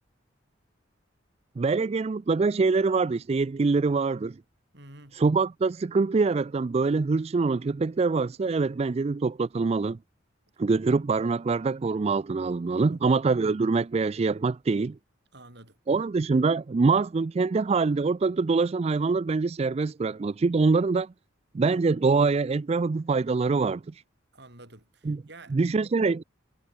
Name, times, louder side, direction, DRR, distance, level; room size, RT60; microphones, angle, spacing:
voice 1, 1.6-4.4 5.1-10.0 10.6-15.0 15.9-21.1 21.5-24.0 25.1-25.2 25.5-26.2, right 4 dB, 30° right, 0.3 m, -24 dB
voice 2, 4.7-5.2 12.8-13.1 15.3-15.8 24.3-25.6, right 2 dB, 60° right, 7.9 m, -49 dB
head